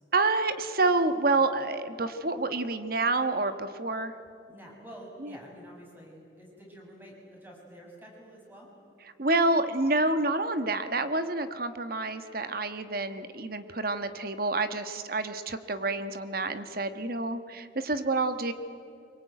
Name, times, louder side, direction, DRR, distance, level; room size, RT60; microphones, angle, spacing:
voice 1, 0.1-4.1 5.2-5.4 9.2-18.5, right 2 dB, 50° right, 10 dB, 1.3 m, -28 dB
voice 2, 4.5-8.7, equal, 10° right, -1 dB, 6.7 m, -48 dB
25.0 x 23.0 x 9.2 m, 2.7 s
head